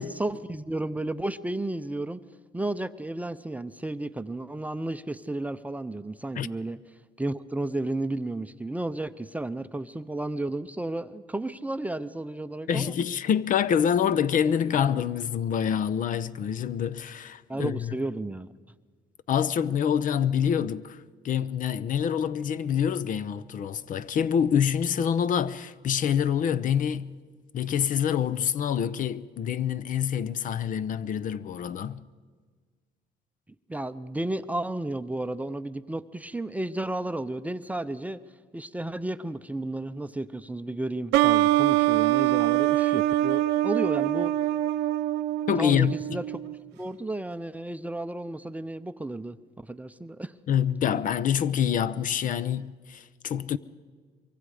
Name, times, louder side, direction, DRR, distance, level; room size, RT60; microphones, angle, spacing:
voice 1, 0.0-2.2 2.5-6.8 7.2-12.9 17.5-18.5 33.7-38.2 38.5-44.3 45.6-46.4 46.7-49.4 49.6-50.3, right 2 dB, 10° right, 0.6 m, -32 dB
voice 2, 12.7-18.0 19.3-27.1 27.5-32.0 45.5-45.9 50.5-53.6, left 8 dB, 50° left, 0.7 m, -26 dB
sound 1, 41.1-46.6, right 16 dB, 90° right, 0.7 m, -24 dB
24.0 x 23.5 x 4.9 m
cardioid pair, 110°, 17 cm